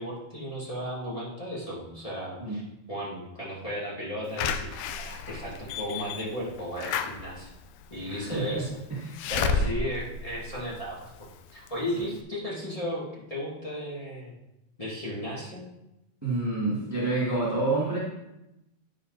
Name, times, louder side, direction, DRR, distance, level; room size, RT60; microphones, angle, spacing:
voice 1, 0.0-2.6 2.9-7.5 7.9-8.7 9.3-14.3 14.8-15.6, equal, 15° left, -6 dB, 1.7 m, -35 dB
Slam / Alarm, 4.4-11.2 11.7-11.8 12.0-12.1, left 5 dB, 85° left, 2.0 m, -32 dB
voice 2, 8.1-8.6 8.9-9.2 9.5-9.6 11.9-12.0 16.2-18.0, right 2 dB, 10° right, -6 dB, 0.8 m, -28 dB
9.6 x 6.3 x 4.0 m, 0.90 s
omnidirectional pair, 3.5 m